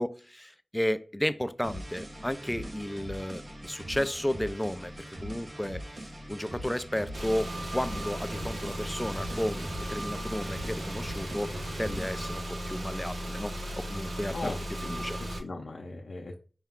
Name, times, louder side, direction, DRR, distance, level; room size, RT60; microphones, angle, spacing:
voice 1, 0.0-4.9 5.2-11.5 11.8-13.5 13.9-14.5 14.8-15.2, left 1 dB, 10° left, 0.4 m, -33 dB
sound 1, 1.6-12.3, equal, 55° right, 1.1 m, -42 dB
Car / Engine, 7.1-15.4, equal, 85° right, 0.9 m, -36 dB
voice 2, 14.3-16.4, left 3 dB, 85° left, 0.6 m, -39 dB
5.5 x 2.3 x 3.6 m
wide cardioid pair, 55°, 0 cm